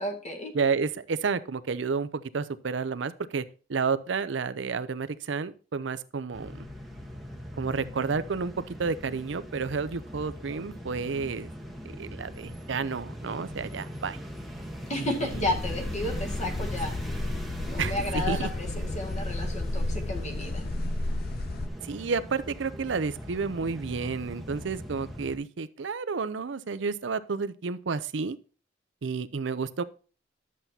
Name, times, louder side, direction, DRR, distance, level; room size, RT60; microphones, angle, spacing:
voice 1, 0.0-0.5 14.9-16.9 17.6-20.6, left 1 dB, 40° left, 1 dB, 1.9 m, -32 dB
voice 2, 0.5-3.4 3.7-6.7 7.6-11.5 11.8-14.2 15.0-15.1 17.8-18.5 21.8-28.4 29.0-29.8, right 5 dB, 80° right, 14 dB, 0.6 m, -31 dB
sound 1, 6.3-25.4, equal, ahead, 1.1 m, -41 dB
sound 2, 15.3-21.7, left 2 dB, 55° left, 0.6 m, -32 dB
11.0 x 7.4 x 2.8 m, 0.37 s
head